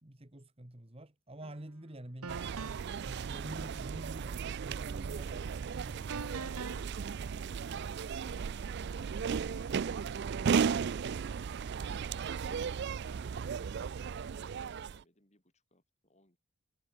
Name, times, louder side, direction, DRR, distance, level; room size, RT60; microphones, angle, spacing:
voice 1, 0.0-2.6 3.0-5.9, right 1 dB, 25° right, 1.7 m, -48 dB
sound 1, 1.4-1.6 2.2-3.0 6.1-6.8, right 4 dB, 85° right, 1.1 m, -43 dB
sound 2, 2.3-15.0, right 6 dB, 50° right, 0.3 m, -35 dB
voice 2, 5.2-7.7 8.1-14.2 14.8-16.4, left 1 dB, 30° left, 6.6 m, -66 dB
head